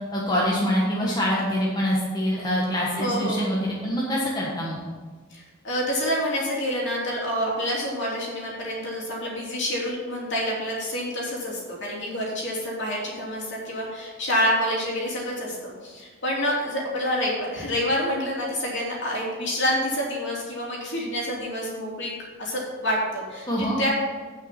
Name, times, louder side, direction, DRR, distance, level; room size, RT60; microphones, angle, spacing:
voice 1, 0.1-4.8 23.5-23.8, equal, 20° left, -4 dB, 1.4 m, -25 dB
voice 2, 3.0-3.5 5.3-22.1 22.4-23.9, equal, 60° left, -3 dB, 3.0 m, -27 dB
10.0 x 5.8 x 5.9 m, 1.4 s
head